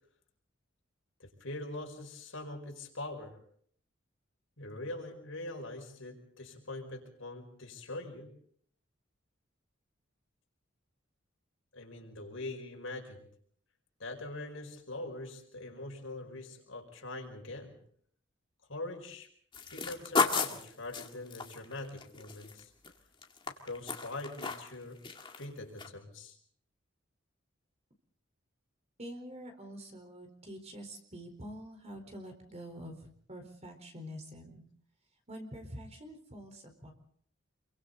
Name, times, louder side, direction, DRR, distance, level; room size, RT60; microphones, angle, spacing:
voice 1, 1.2-3.4 4.6-8.3 11.7-13.3 14.0-17.8 18.7-19.3 19.7-22.7 23.6-25.0 25.4-26.4, left 2 dB, 85° left, 2 dB, 5.2 m, -43 dB
sound 1, 19.5-22.9 23.2-24.7 25.0-25.5 25.8-25.9, left 4 dB, 25° left, 2.1 m, -33 dB
voice 2, 29.0-34.6 35.3-36.9, equal, 35° right, 5 dB, 4.4 m, -46 dB
27.5 x 23.5 x 4.1 m, 0.63 s
head